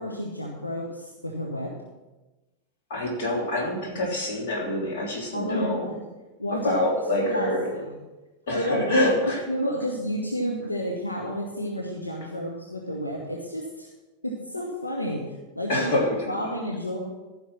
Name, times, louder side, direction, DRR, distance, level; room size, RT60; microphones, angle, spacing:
voice 1, 0.0-1.7 5.3-5.9 6.4-6.8 7.2-7.5 7.9-8.0 8.5-9.0 9.5-13.9 14.2-15.9 16.3-17.0, equal, 85° left, -1 dB, 1.3 m, -30 dB
voice 2, 2.9-5.9 6.5-7.7 8.5-9.4 15.7-16.1, left 1 dB, 55° left, -2 dB, 3.4 m, -26 dB
14.5 x 5.7 x 5.9 m, 1.1 s
figure-of-eight pair, 90°, 0 cm